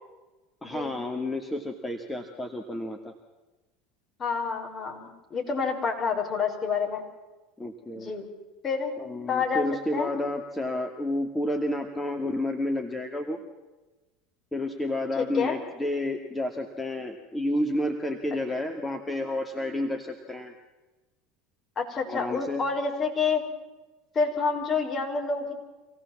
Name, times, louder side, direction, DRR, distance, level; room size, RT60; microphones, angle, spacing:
voice 1, 0.6-3.1 7.6-8.1 9.0-13.4 14.5-20.5 22.1-22.6, left 1 dB, 10° left, 3 dB, 2.4 m, -30 dB
voice 2, 4.2-7.0 8.0-8.3 8.6-8.9 9.3-9.7 9.9-10.1 15.2-15.6 21.8-23.4 24.1-25.5, left 5 dB, 35° left, 2 dB, 5.5 m, -28 dB
26.0 x 17.0 x 7.4 m, 1.1 s
hypercardioid pair, 80°, 0 cm